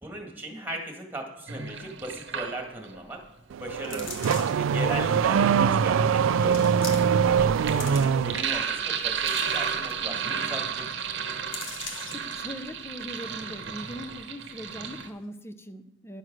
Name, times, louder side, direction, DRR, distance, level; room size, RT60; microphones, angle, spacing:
voice 1, 0.0-3.2 3.6-6.7 7.3-11.1, right 1 dB, 10° right, 2 dB, 1.9 m, -37 dB
Sink (filling or washing), 1.5-3.0 4.2-15.1, right 7 dB, 60° right, 1.0 m, -33 dB
Car / Accelerating revving vroom, 3.5-8.5, right 7 dB, 75° right, 0.3 m, -23 dB
sound 1, 3.8-4.7 5.4-5.5 6.4-7.3 7.5-8.4 8.9-10.0 10.4-10.5 10.8-11.0 11.5-12.3 12.8-12.9, left 4 dB, 75° left, 1.7 m, -40 dB
voice 2, 10.0-10.5 12.1-16.2, equal, 10° left, 9 dB, 0.6 m, -41 dB
11.0 x 6.3 x 6.2 m, 0.84 s
head